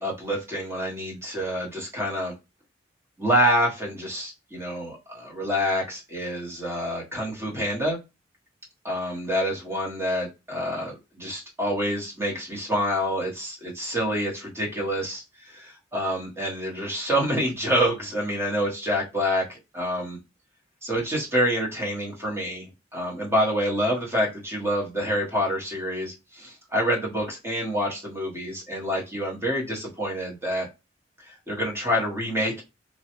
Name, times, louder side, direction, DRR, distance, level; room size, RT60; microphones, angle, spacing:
voice 1, 0.0-2.3 3.2-8.0 8.8-20.2 20.8-22.7 22.9-30.7 31.2-32.6, equal, 15° right, -2 dB, 0.9 m, -27 dB
3.1 x 2.2 x 2.9 m, 0.26 s
head